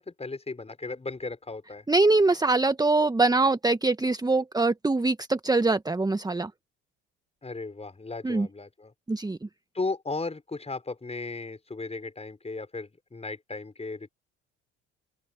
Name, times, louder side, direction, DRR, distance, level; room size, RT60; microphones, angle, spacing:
voice 1, 0.0-1.9 7.4-8.9 9.7-14.1, left 3 dB, 15° left, 5.9 m, -36 dB
voice 2, 1.9-6.5 8.2-8.5 9.1-9.4, right 3 dB, 10° right, 1.5 m, -23 dB
open air
figure-of-eight pair, 55°, 35 cm